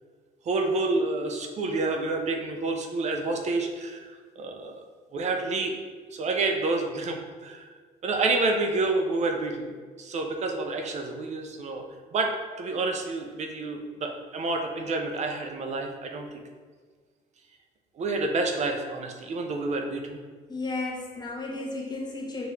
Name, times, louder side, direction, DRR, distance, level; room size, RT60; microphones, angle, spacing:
voice 1, 0.5-4.8 5.1-5.7 6.1-7.7 8.0-9.7 10.0-11.8 12.1-16.3 18.0-20.2, right 3 dB, 40° right, 3 dB, 0.6 m, -29 dB
voice 2, 20.5-22.5, left 2 dB, 25° left, -2 dB, 0.9 m, -33 dB
4.8 x 2.5 x 3.3 m, 1.5 s
cardioid pair, 110°, 17 cm